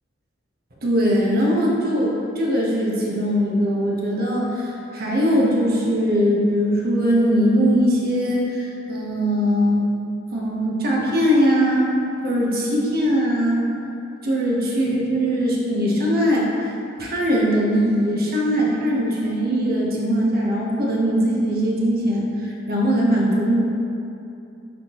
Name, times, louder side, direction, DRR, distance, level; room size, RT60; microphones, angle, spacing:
voice 1, 0.8-9.9 10.3-12.0 12.2-13.6 14.2-16.5 17.0-22.3 22.7-23.6, equal, 50° right, -4 dB, 1.1 m, -20 dB
9.6 x 3.6 x 3.1 m, 2.7 s
head